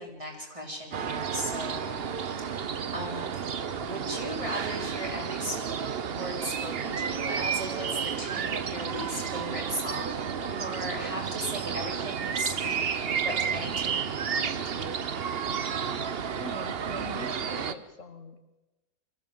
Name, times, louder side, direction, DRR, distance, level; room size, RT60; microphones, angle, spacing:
voice 1, 0.0-2.0 2.4-3.5 3.8-5.6 6.1-10.2 10.5-14.5, equal, 20° right, -1 dB, 4.0 m, -37 dB
sound 1, 0.9-17.7, right 7 dB, 45° right, 1.0 m, -31 dB
voice 2, 16.4-18.4, left 3 dB, 60° left, 7 dB, 1.7 m, -42 dB
23.5 x 15.0 x 7.6 m, 1.1 s
omnidirectional pair, 1.5 m